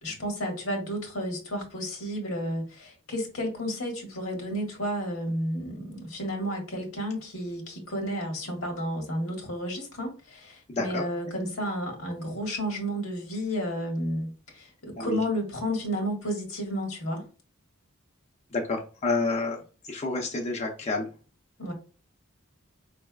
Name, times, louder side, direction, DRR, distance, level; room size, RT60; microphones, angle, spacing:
voice 1, 0.0-17.3 21.6-21.7, equal, 80° left, 1.5 m, -32 dB
voice 2, 10.7-11.1 15.0-15.2 18.5-21.1, left 3 dB, 30° left, 0.5 m, -29 dB
5.3 x 3.3 x 2.3 m
head